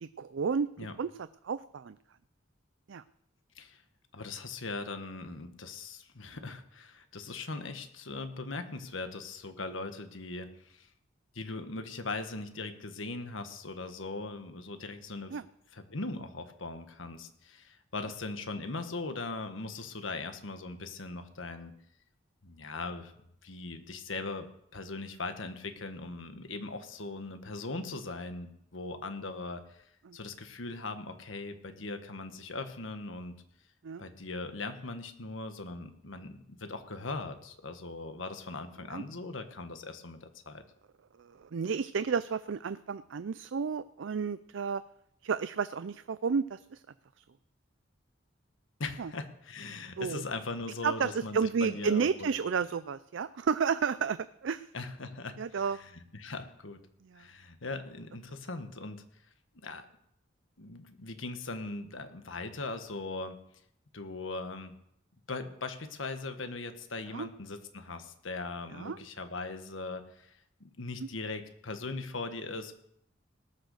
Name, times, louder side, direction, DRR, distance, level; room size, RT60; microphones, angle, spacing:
voice 1, 0.0-2.0 2.9-3.0 15.3-15.5 30.0-30.2 33.8-34.0 38.9-39.0 41.2-44.8 45.2-46.8 49.0-49.1 50.0-50.2 50.8-54.7 55.4-55.8 57.0-57.3 67.1-67.3 68.7-69.0 71.0-71.1, right 6 dB, 70° right, 14 dB, 0.4 m, -32 dB
voice 2, 4.1-10.9 11.3-15.4 15.7-21.7 22.4-23.1 23.4-24.5 24.7-29.8 30.1-33.3 34.0-40.6 48.8-52.3 54.7-56.8 57.1-59.0 59.6-59.9 60.6-63.4 63.9-64.7 65.3-70.3 70.6-72.7, left 3 dB, 80° left, 8 dB, 1.4 m, -40 dB
19.0 x 6.6 x 6.5 m, 0.74 s
head